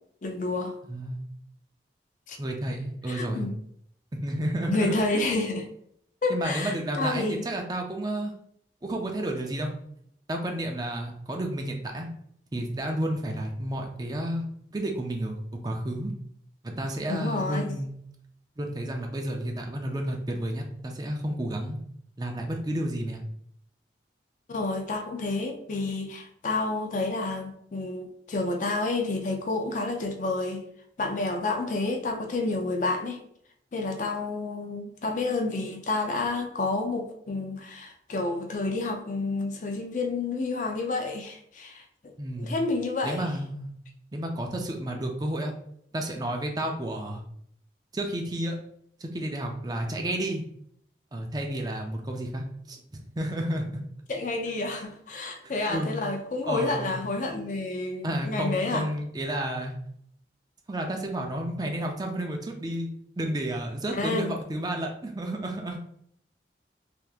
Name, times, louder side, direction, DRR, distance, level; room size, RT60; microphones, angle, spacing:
voice 1, 0.2-0.8 2.3-2.4 3.1-3.6 4.7-5.7 6.2-7.5 17.1-17.8 24.5-30.6 31.0-33.2 33.7-41.8 42.4-43.3 54.1-58.9 63.9-64.4, left 3 dB, 45° left, 4 dB, 0.4 m, -29 dB
voice 2, 0.9-1.2 2.4-3.5 4.1-5.3 6.3-8.3 8.8-9.7 10.3-12.1 12.5-14.4 14.7-16.1 16.6-18.0 18.6-21.8 22.2-23.2 42.2-42.5 43.0-43.7 44.1-45.5 45.9-47.2 47.9-48.6 49.0-50.4 51.1-53.7 55.7-56.0 56.5-57.0 58.0-59.7 60.7-62.9 63.2-65.8, right 1 dB, 20° right, 2 dB, 0.4 m, -31 dB
3.4 x 2.8 x 2.4 m, 0.70 s
head